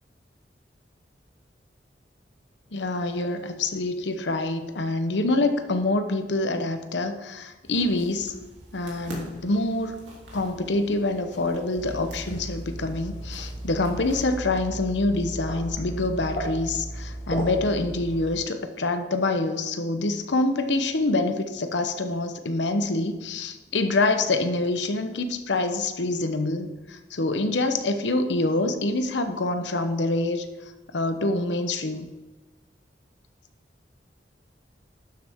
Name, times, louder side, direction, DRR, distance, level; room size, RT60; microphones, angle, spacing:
voice 1, 2.7-8.3 8.7-9.9 10.3-30.5 30.9-32.1, left 2 dB, 80° left, 8 dB, 0.9 m, -26 dB
sound 1, 7.6-14.3, equal, 80° right, 2.9 m, -45 dB
sound 2, 11.7-18.4, right 1 dB, 55° left, 2.1 m, -35 dB
11.5 x 7.4 x 3.6 m, 1.2 s
head